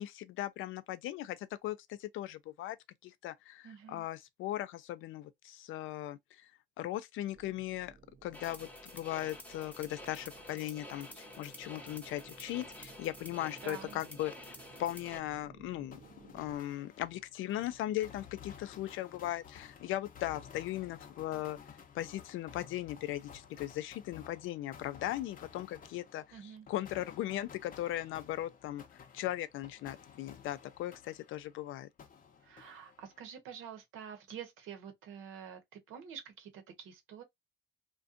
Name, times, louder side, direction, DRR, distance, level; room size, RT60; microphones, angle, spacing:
voice 1, 0.0-2.8 3.0-6.2 6.8-7.9 8.2-8.7 8.9-14.3 14.8-16.0 16.3-21.6 21.9-31.9, left 14 dB, 85° left, 0.4 m, -38 dB
voice 2, 3.6-4.1 13.6-14.0 26.3-26.7 32.4-37.2, right 8 dB, 90° right, 0.8 m, -48 dB
sound 1, 7.3-16.6, right 5 dB, 40° right, 0.6 m, -58 dB
sound 2, 8.3-15.2, left 1 dB, 5° left, 0.8 m, -50 dB
sound 3, 15.9-31.6 32.0-33.3, left 7 dB, 45° left, 0.6 m, -54 dB
2.5 x 2.2 x 2.4 m
cardioid pair, 90°, 20 cm